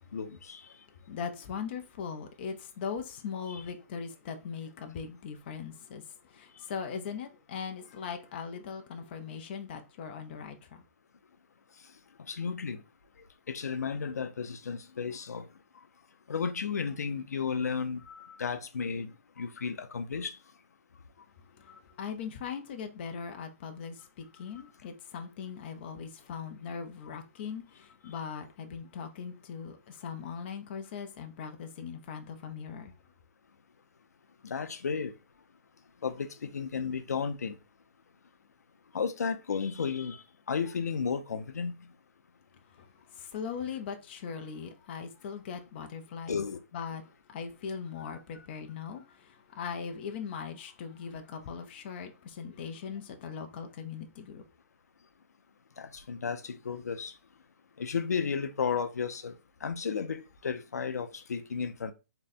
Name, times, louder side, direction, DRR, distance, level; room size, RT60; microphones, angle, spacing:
voice 1, 0.1-0.7 3.5-3.6 12.2-12.8 13.5-15.5 16.3-20.4 21.7-21.8 34.4-35.1 36.0-37.6 38.9-41.9 46.3-46.6 55.8-57.2 57.8-61.9, left 6 dB, 90° left, 0.6 m, -33 dB
voice 2, 0.7-10.8 21.5-32.9 42.7-46.4 46.7-47.0 47.3-54.4, left 6 dB, 40° left, 0.6 m, -40 dB
3.7 x 2.2 x 4.2 m
hypercardioid pair, 155°, 9 cm